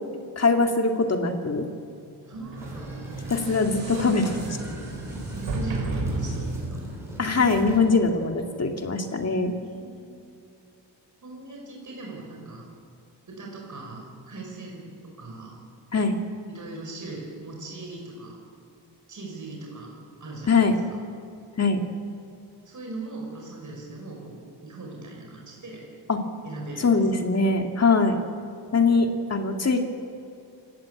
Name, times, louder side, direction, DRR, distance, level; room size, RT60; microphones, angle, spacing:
voice 1, 0.4-1.7 3.3-4.2 7.2-9.5 15.9-16.1 20.5-20.7 21.6-21.8 26.1-26.2 26.8-28.2 28.7-29.8, left 4 dB, 35° left, 4 dB, 2.2 m, -22 dB
voice 2, 2.3-3.3 3.6-4.4 5.1-6.8 9.6-10.3 11.2-12.6 13.3-14.9 15.2-15.6 16.5-18.3 19.1-19.9 20.2-20.7 22.6-25.8 26.4-26.9, right 3 dB, 45° right, -1 dB, 6.0 m, -40 dB
Sliding door, 2.3-7.0, right 2 dB, 80° right, 4.9 m, -33 dB
sound 1, 2.6-8.0, right 1 dB, 5° right, 7.6 m, -40 dB
sound 2, 3.3-5.7 6.2-6.9, right 2 dB, 25° right, 7.8 m, -49 dB
28.0 x 15.0 x 8.6 m, 2.7 s
wide cardioid pair, 140°, 43 cm